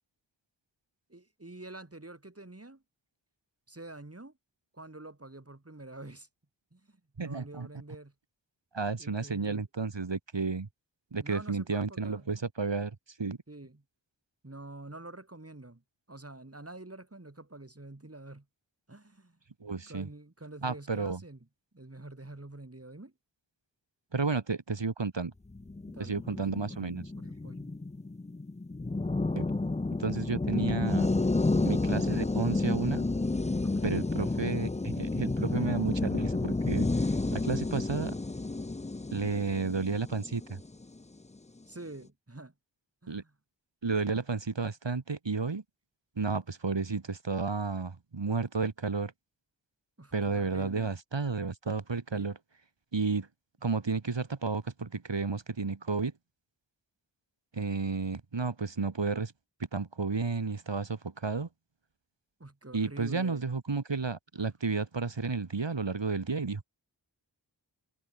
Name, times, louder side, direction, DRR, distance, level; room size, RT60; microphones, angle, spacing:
voice 1, 1.1-2.8 3.7-4.3 4.7-6.3 6.7-8.1 9.0-9.6 11.2-12.3 13.5-13.8 14.4-15.8 16.1-18.5 18.9-19.4 19.7-21.4 21.7-23.1 25.9-26.4 26.7-27.7 33.6-34.0 41.7-42.5 43.0-43.3 50.0-50.9 52.1-52.3 62.4-63.4, right 2 dB, 30° right, 5.1 m, -47 dB
voice 2, 7.2-7.7 8.7-10.7 11.1-13.4 19.6-20.1 20.6-21.2 24.1-25.3 26.0-27.1 29.4-29.5 30.0-31.1 31.6-33.1 33.8-38.2 39.1-40.6 43.1-43.2 43.8-45.6 46.2-49.1 50.1-52.3 52.9-53.3 53.6-56.1 57.5-59.3 59.7-61.5 62.7-66.6, right 4 dB, 80° right, 3.5 m, -32 dB
sound 1, 25.5-41.0, left 2 dB, 15° left, 0.6 m, -31 dB
wide cardioid pair, 60°, 44 cm